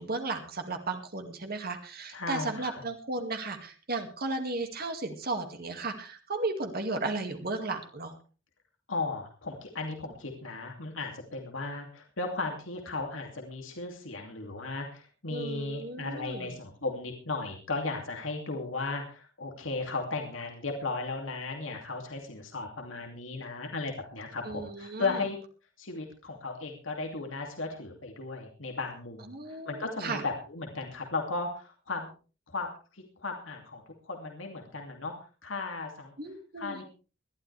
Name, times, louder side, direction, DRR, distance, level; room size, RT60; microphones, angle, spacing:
voice 1, 0.0-8.2 15.3-16.5 24.4-25.2 29.2-30.2 36.2-36.8, right 3 dB, 50° right, 5 dB, 2.1 m, -35 dB
voice 2, 2.1-2.8 8.9-25.4 25.8-32.1 32.5-32.7 32.9-35.1 35.4-36.1 36.6-36.8, left 3 dB, 90° left, 2 dB, 2.7 m, -36 dB
20.5 x 12.5 x 3.4 m, 0.35 s
head